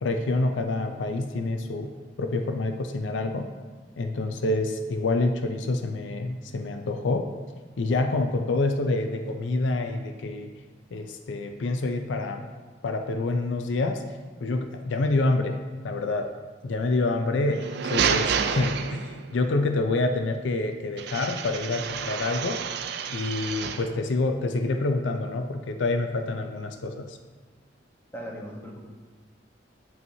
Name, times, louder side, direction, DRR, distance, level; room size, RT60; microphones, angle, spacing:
voice 1, 0.0-1.9 2.2-3.5 4.0-7.3 7.8-10.5 10.9-12.4 12.8-14.0 14.4-15.6 15.8-16.3 16.6-17.5 17.8-22.6 23.1-27.2, left 2 dB, 75° left, 6 dB, 0.5 m, -27 dB
sound 1, 17.5-19.4 21.0-24.0, right 6 dB, 60° right, 0.4 m, -29 dB
voice 2, 28.1-28.8, equal, 10° left, -2 dB, 1.0 m, -38 dB
9.0 x 5.5 x 2.7 m, 1.4 s
head